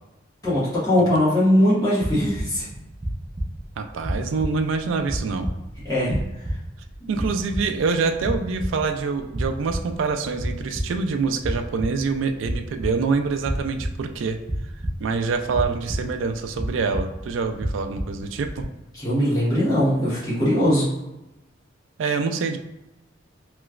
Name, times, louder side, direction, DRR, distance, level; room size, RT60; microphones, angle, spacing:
voice 1, 0.4-2.7 5.8-6.2 18.9-20.9, left 1 dB, 20° left, -9 dB, 1.3 m, -20 dB
sound 1, 2.0-18.6, right 1 dB, 25° right, 0.6 m, -32 dB
voice 2, 3.8-5.5 7.1-14.4 15.0-18.7 22.0-22.6, right 4 dB, 70° right, 7 dB, 0.3 m, -25 dB
3.1 x 2.9 x 2.4 m, 0.96 s
head